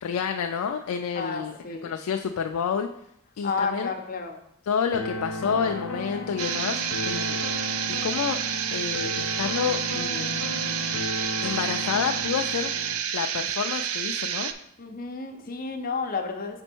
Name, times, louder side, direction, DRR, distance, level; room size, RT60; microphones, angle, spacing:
voice 1, 0.0-2.9 3.4-3.9 4.7-6.8 7.1-7.4 7.9-8.4 8.7-10.6 11.4-12.7 13.1-14.5, left 7 dB, 85° left, 5 dB, 0.4 m, -29 dB
voice 2, 1.1-1.9 3.4-4.4 14.8-16.6, left 4 dB, 40° left, 3 dB, 0.7 m, -31 dB
sound 1, 4.9-12.9, left 1 dB, 70° left, 0.8 m, -34 dB
sound 2, 6.4-14.5, right 8 dB, 70° right, 0.4 m, -29 dB
5.2 x 4.4 x 4.5 m, 0.76 s
head